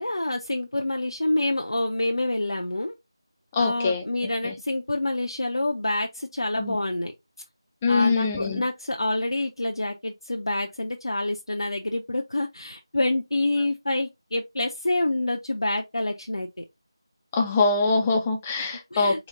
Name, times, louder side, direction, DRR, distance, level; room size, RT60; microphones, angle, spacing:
voice 1, 0.0-2.9 3.6-7.1 7.9-16.6 18.6-19.2, left 2 dB, 65° left, 0.5 m, -27 dB
voice 2, 3.5-4.0 4.4-4.5 6.6-6.8 7.8-8.6 17.3-19.3, left 3 dB, 10° left, 0.4 m, -23 dB
3.9 x 2.1 x 3.6 m
figure-of-eight pair, 165°, 3 cm